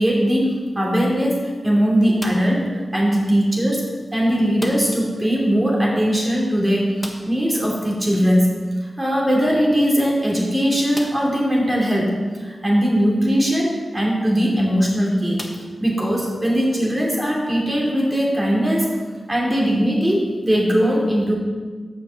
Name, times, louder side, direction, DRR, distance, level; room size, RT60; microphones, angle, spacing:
voice 1, 0.0-3.8 4.1-15.4 15.8-18.9 19.3-21.3, equal, 20° right, -3 dB, 2.8 m, -20 dB
sound 1, 2.2-2.7 4.6-5.1 5.4-5.5 5.8-5.9 7.0-7.5 9.3-9.4 10.0-10.1 10.9-11.4 12.1-12.2 14.2-14.5 15.3-16.2, left 1 dB, 15° left, 1.2 m, -37 dB
6.4 x 5.3 x 7.1 m, 1.4 s
cardioid pair, 45°, 0 cm